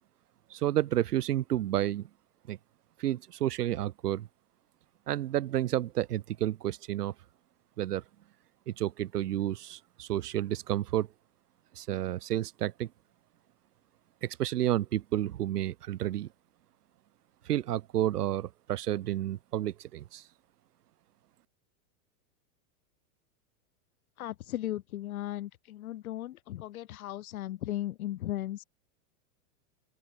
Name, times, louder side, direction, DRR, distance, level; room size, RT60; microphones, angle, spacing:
voice 1, 0.5-2.1 2.5-2.6 3.0-4.3 5.1-7.1 7.8-8.0 8.7-11.1 11.8-12.9 14.2-16.3 17.4-20.2, right 13 dB, 90° right, 2.9 m, -30 dB
voice 2, 24.2-28.6, left 14 dB, 65° left, 6.1 m, -36 dB
open air
supercardioid pair, 175°, 45 cm